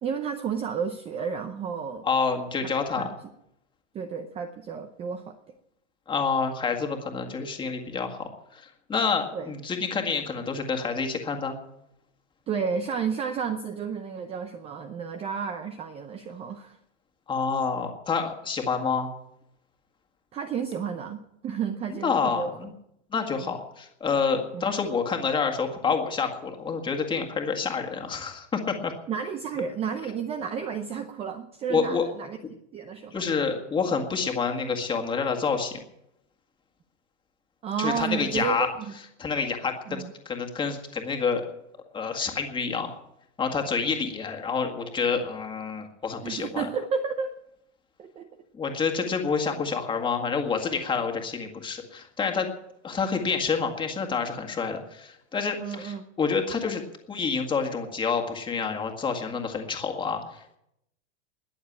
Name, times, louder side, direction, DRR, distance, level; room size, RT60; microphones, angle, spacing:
voice 1, 0.0-2.1 2.6-3.1 3.9-5.4 9.3-9.5 12.5-16.8 20.3-22.5 23.4-23.5 24.5-24.7 29.1-32.4 32.7-33.2 37.6-38.9 39.9-40.1 46.2-47.3 48.0-48.3 55.6-56.0, right 6 dB, 15° right, 8 dB, 0.7 m, -32 dB
voice 2, 2.0-3.1 6.1-11.6 17.3-19.1 22.0-22.7 23.1-29.0 31.7-32.0 33.1-35.8 37.8-38.7 39.2-41.4 41.9-43.0 43.4-46.7 48.5-52.5 52.8-56.8 57.1-60.6, left 5 dB, 15° left, 3 dB, 1.9 m, -28 dB
21.0 x 7.2 x 8.7 m, 0.81 s
supercardioid pair, 155°, 36 cm